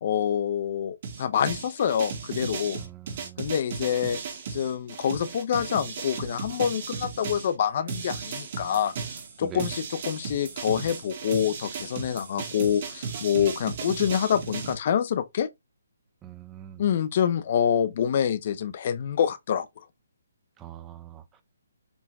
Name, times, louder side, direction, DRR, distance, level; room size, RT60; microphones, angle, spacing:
voice 1, 0.0-2.8 3.4-4.2 4.5-8.9 9.4-15.5 16.8-19.7, left 8 dB, 40° left, 0.7 m, -26 dB
sound 1, 1.0-7.5 7.9-14.7, right 5 dB, 40° right, 2.0 m, -36 dB
voice 2, 2.8-3.5 9.4-9.7 16.2-16.8 20.6-21.4, right 11 dB, 15° right, 0.6 m, -43 dB
7.1 x 3.9 x 3.6 m
hypercardioid pair, 165°, 0 cm